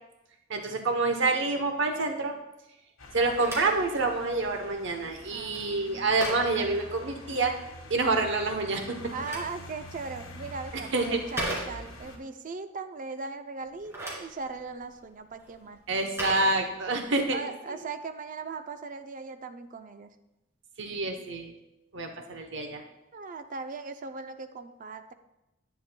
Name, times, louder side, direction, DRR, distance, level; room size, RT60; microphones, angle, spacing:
voice 1, 0.5-2.4 3.1-7.5 7.9-9.0 10.7-11.2 15.9-17.8 20.8-21.5 21.9-22.8, right 3 dB, 60° right, 4 dB, 0.9 m, -27 dB
sound 1, 3.0-12.2, left 1 dB, 80° left, 1.4 m, -46 dB
Telephone, 3.0-7.6 8.8-12.2 13.6-17.2, right 1 dB, 15° right, 2.4 m, -40 dB
voice 2, 5.3-6.2 9.1-15.8 17.3-20.1 23.1-25.1, right 4 dB, 40° right, 9 dB, 0.5 m, -39 dB
10.5 x 9.1 x 2.2 m, 0.94 s
head